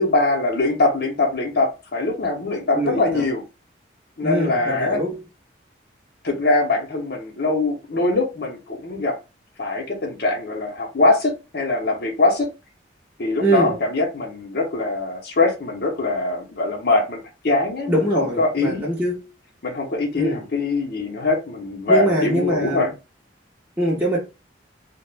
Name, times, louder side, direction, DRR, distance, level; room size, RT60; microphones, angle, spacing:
voice 1, 0.0-3.4 4.2-5.0 6.2-9.1 9.6-12.5 13.2-18.8 19.6-22.9, left 2 dB, 60° left, 0.7 m, -22 dB
voice 2, 2.7-3.2 4.2-5.2 13.4-13.8 17.9-19.3 20.2-20.4 21.9-22.9 23.8-24.2, right 1 dB, 10° right, 0.5 m, -23 dB
2.3 x 2.1 x 3.2 m
head